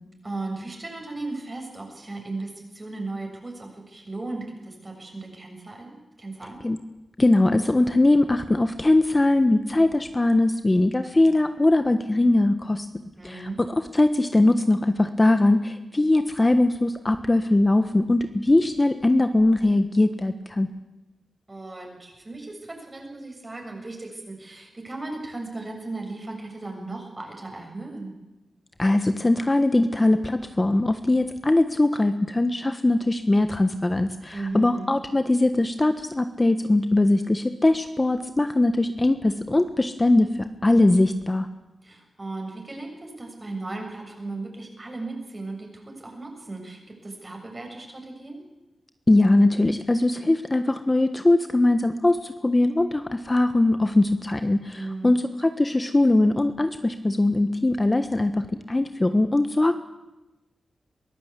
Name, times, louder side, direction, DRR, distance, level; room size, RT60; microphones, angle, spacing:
voice 1, 0.2-6.6 13.2-13.6 21.5-28.1 34.3-34.9 41.8-48.4 54.7-55.2, right 2 dB, 35° right, 2 dB, 6.9 m, -36 dB
voice 2, 7.2-12.9 13.3-13.4 13.9-20.7 28.8-41.5 49.1-59.8, left 2 dB, 25° left, 8 dB, 1.3 m, -21 dB
22.5 x 15.0 x 8.4 m, 1.0 s
cardioid pair, 55°, 0 cm